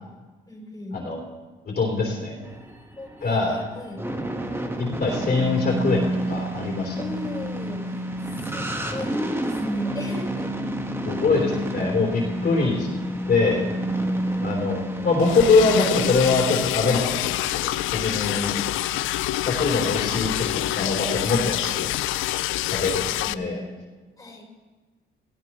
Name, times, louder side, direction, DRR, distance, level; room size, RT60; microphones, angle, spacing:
voice 1, 0.5-1.0 3.0-4.0 7.0-8.0 8.4-10.5 11.5-11.6 14.1-14.8 18.3-18.6 23.2-23.8 24.2-24.5, left 2 dB, 15° left, -2 dB, 4.2 m, -38 dB
voice 2, 1.7-2.3 3.2-3.6 4.8-7.0 11.1-12.9 13.3-13.7 14.4-18.5 19.5-21.9 22.7-23.6, left 3 dB, 50° left, -2 dB, 3.4 m, -23 dB
sound 1, 2.4-16.2, right 1 dB, 10° right, 1.4 m, -29 dB
Liquid, 15.2-23.3, left 15 dB, 85° left, 0.4 m, -27 dB
18.5 x 15.5 x 3.1 m, 1.3 s
cardioid pair, 90°, 20 cm